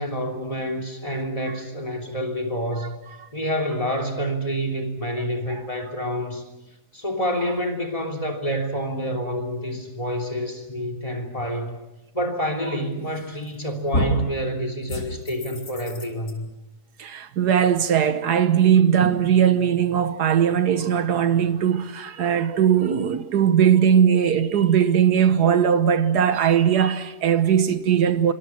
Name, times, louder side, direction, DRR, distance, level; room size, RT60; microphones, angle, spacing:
voice 1, 0.0-3.0 3.3-6.4 6.9-11.8 12.1-16.5, equal, 20° left, 3.3 m, -28 dB
sound 1, 13.1-13.5 13.9-14.3 14.9-16.3, left 1 dB, 70° left, 3.7 m, -28 dB
voice 2, 17.0-28.3, right 8 dB, 85° right, 1.7 m, -19 dB
26.0 x 25.0 x 6.1 m
omnidirectional pair, 1.7 m